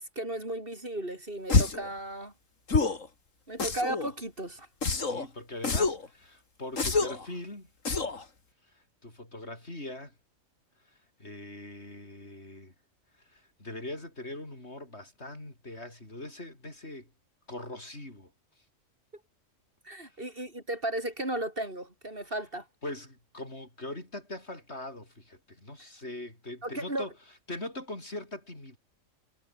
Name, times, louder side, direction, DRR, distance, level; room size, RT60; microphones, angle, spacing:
voice 1, 0.0-2.3 3.5-4.7 19.8-22.7 26.6-27.1, right 1 dB, 40° right, 7.1 m, -35 dB
sound 1, 1.5-1.9 2.7-3.1 3.6-4.1 4.8-5.3 5.6-6.1 6.8-7.3 7.9-8.2, left 4 dB, 70° left, 3.1 m, -27 dB
voice 2, 5.0-7.7 8.7-10.1 11.2-12.7 13.3-17.1 17.5-18.3 22.8-27.1 27.5-28.8, left 1 dB, 50° left, 6.8 m, -41 dB
omnidirectional pair, 1.4 m